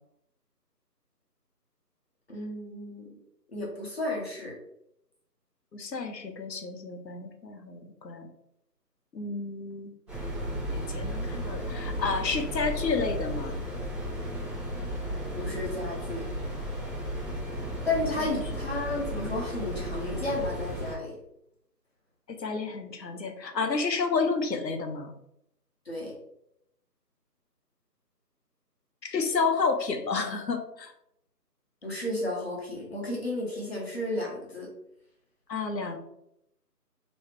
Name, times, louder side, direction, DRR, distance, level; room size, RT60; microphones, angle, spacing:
voice 1, 2.3-3.1 3.5-4.6 15.3-16.3 17.8-21.2 25.8-26.1 31.8-34.7, left 2 dB, 40° left, -2 dB, 1.0 m, -33 dB
voice 2, 5.7-8.3 9.1-9.9 10.7-13.6 22.3-25.1 29.0-30.9 35.5-36.0, left 4 dB, 85° left, 5 dB, 0.8 m, -30 dB
sound 1, 10.1-20.9, equal, 15° right, 1.2 m, -34 dB
3.1 x 3.1 x 3.2 m, 0.77 s
figure-of-eight pair, 165°, 50 cm